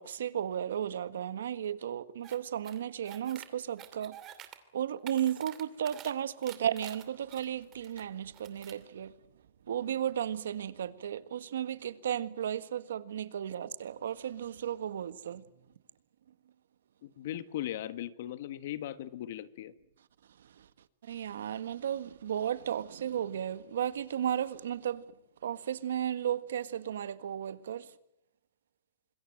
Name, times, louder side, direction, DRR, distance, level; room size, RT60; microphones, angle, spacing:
voice 1, 0.0-4.1 4.7-9.1 9.7-15.4 20.6-20.7 21.0-25.0 25.4-27.9, right 10 dB, 85° right, 1.6 m, -34 dB
sound 1, 2.2-2.4 2.6-3.5 3.8-4.6 4.9-6.1 6.4-8.0 8.3-8.8, right 12 dB, 25° right, 2.6 m, -48 dB
voice 2, 17.0-19.7, left 12 dB, 60° left, 1.5 m, -38 dB
26.5 x 22.0 x 7.9 m
hypercardioid pair, 155°, 0 cm